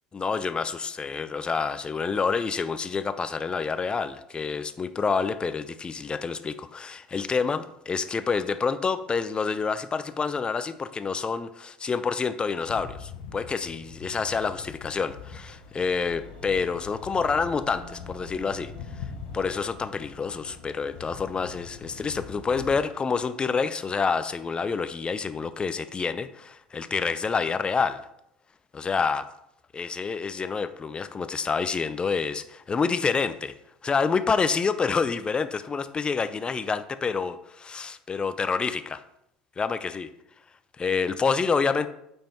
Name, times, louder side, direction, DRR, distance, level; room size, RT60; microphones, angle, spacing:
voice 1, 0.1-18.7 19.0-19.1 19.3-28.0 28.7-29.3 29.7-33.5 33.8-39.0 39.6-40.1 40.8-41.9, left 5 dB, 25° left, 12 dB, 0.6 m, -28 dB
sound 1, 12.7-22.7, left 6 dB, 65° left, 0.9 m, -43 dB
sound 2, 15.2-25.4 25.6-25.7, left 1 dB, 90° right, 2.1 m, -51 dB
8.8 x 5.5 x 4.5 m, 0.79 s
figure-of-eight pair, 70°, 4 cm